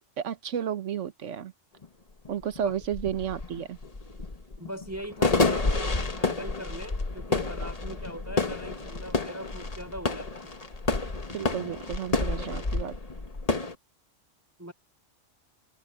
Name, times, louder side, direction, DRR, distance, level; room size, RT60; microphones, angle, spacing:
voice 1, 0.2-1.5 2.3-3.8 11.3-13.0, right 9 dB, 70° right, 1.3 m, -32 dB
sound 1, 1.8-1.9 2.2-13.7, left 3 dB, 30° left, 1.4 m, -29 dB
voice 2, 4.6-10.5 14.6-14.7, equal, 10° right, 5.2 m, -40 dB
open air
omnidirectional pair, 1.3 m